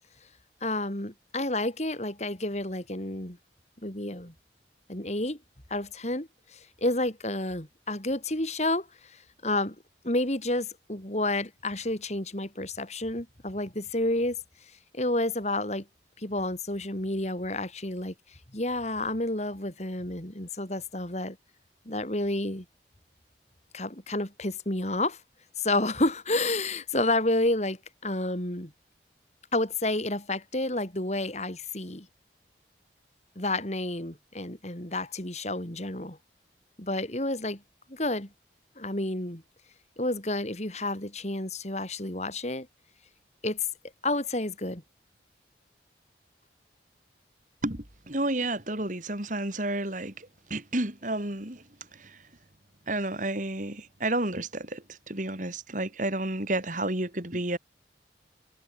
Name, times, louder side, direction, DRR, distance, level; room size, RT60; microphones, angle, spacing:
voice 1, 0.6-3.4 3.8-4.3 4.9-5.4 5.7-9.2 9.4-9.8 10.0-14.4 14.9-15.8 16.2-18.1 18.5-21.4 21.9-22.7 23.7-25.2 25.6-27.8 28.0-28.7 29.5-32.1 33.4-36.2 36.8-37.6 37.9-38.3 38.8-39.4 40.0-42.7 43.4-43.7 44.0-44.8, left 2 dB, 40° left, 3.8 m, -30 dB
voice 2, 47.6-51.6 52.0-52.2 52.9-57.6, right 1 dB, 45° right, 3.6 m, -31 dB
head